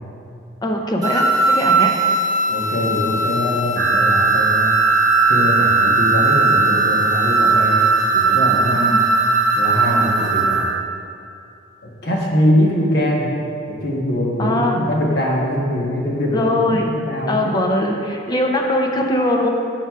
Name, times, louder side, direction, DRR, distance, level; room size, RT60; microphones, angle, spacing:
voice 1, 0.6-1.9 8.7-9.0 9.8-10.1 14.4-14.8 16.3-16.9 17.3-19.5, left 1 dB, 20° left, 1 dB, 0.5 m, -21 dB
sound 1, 1.0-10.6, right 2 dB, 20° right, 0.8 m, -19 dB
voice 2, 2.5-4.7 5.3-7.8 8.1-9.0 9.5-10.6 11.8-13.3 13.7-17.4, equal, 55° left, -2 dB, 1.1 m, -22 dB
sound 2, 3.8-10.8, right 7 dB, 55° right, 0.3 m, -21 dB
10.0 x 6.0 x 2.4 m, 2.6 s
head